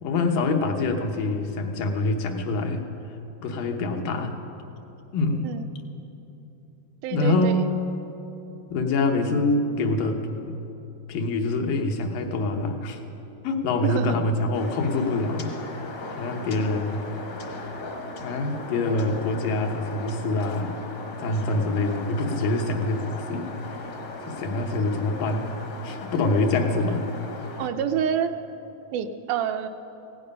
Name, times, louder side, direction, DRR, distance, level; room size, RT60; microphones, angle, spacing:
voice 1, 0.0-2.8 3.4-4.4 5.1-5.5 7.1-7.7 8.7-10.2 10.5-10.6 11.1-13.0 13.4-15.5 16.2-17.0 18.2-20.8 21.2-23.5 24.3-25.5 25.8-27.0, left 2 dB, 85° left, 3 dB, 2.8 m, -25 dB
voice 2, 7.0-7.7 13.8-14.2 27.6-28.3 28.9-29.7, right 8 dB, 80° right, 7 dB, 1.9 m, -27 dB
sound 1, 14.5-27.7, left 2 dB, 60° left, 1.1 m, -38 dB
16.5 x 16.0 x 5.4 m, 3.0 s
omnidirectional pair, 3.8 m